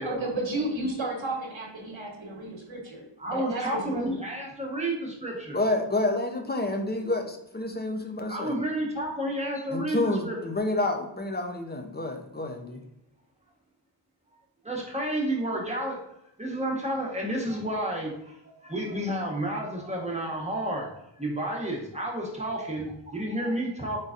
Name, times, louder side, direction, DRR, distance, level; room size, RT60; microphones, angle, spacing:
voice 1, 0.0-4.2, right 2 dB, 80° right, 0 dB, 1.2 m, -33 dB
voice 2, 3.2-5.6 8.3-10.4 14.6-16.0 16.4-24.0, right 1 dB, 15° right, -2 dB, 1.2 m, -31 dB
voice 3, 5.5-8.6 9.7-12.8, left 2 dB, 20° left, 4 dB, 0.7 m, -29 dB
4.0 x 3.9 x 2.5 m, 0.81 s
wide cardioid pair, 55°, 46 cm